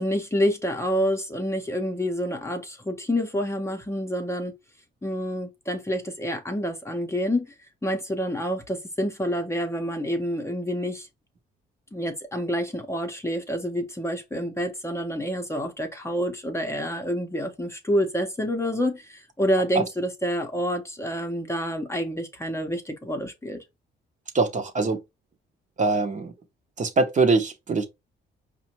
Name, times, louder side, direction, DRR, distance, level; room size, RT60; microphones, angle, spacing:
voice 1, 0.0-4.5 5.0-7.5 7.8-11.1 11.9-23.6, equal, 15° left, 0.7 m, -28 dB
voice 2, 24.3-25.0 25.8-26.3 26.8-27.9, right 3 dB, 40° right, 0.8 m, -23 dB
4.9 x 2.2 x 2.9 m
cardioid pair, 90°, 20 cm